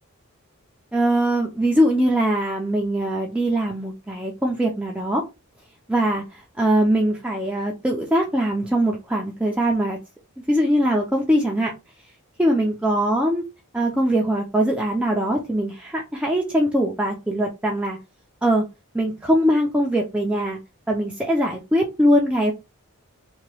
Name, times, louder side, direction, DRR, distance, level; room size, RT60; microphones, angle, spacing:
voice 1, 0.9-5.2 5.9-10.0 10.5-11.7 12.4-13.5 13.7-18.0 18.4-18.6 18.9-20.6 20.9-22.5, right 1 dB, 5° right, -2 dB, 0.4 m, -21 dB
2.9 x 2.2 x 3.0 m, 0.25 s
head